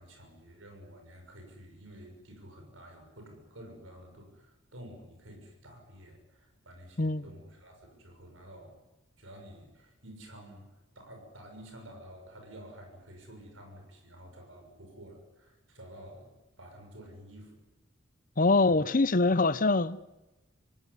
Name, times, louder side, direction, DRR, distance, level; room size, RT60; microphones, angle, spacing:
voice 1, 0.0-8.8 9.2-16.3 16.6-17.6 18.6-18.9, equal, 85° right, 6.7 m, -50 dB
voice 2, 18.4-20.1, left 3 dB, 45° left, 0.8 m, -24 dB
26.5 x 18.0 x 9.9 m
head